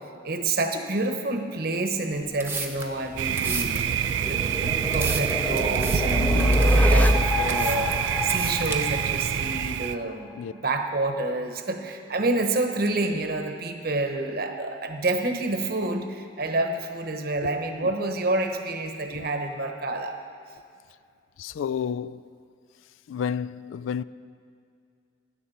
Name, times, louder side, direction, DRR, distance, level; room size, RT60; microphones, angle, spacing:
voice 1, 0.2-20.2, right 2 dB, 50° right, 1.0 m, -28 dB
sound 1, 2.2-8.7, right 4 dB, 10° right, 0.9 m, -35 dB
sound 2, 3.1-9.9, left 1 dB, 10° left, 0.5 m, -26 dB
Thunder, 3.2-10.0, right 8 dB, 75° right, 0.3 m, -26 dB
voice 2, 6.2-6.8 10.4-10.5 17.4-17.5 17.8-17.9 19.1-19.3 21.4-22.3 23.1-24.0, left 7 dB, 85° left, 0.3 m, -32 dB
16.0 x 10.5 x 4.2 m
head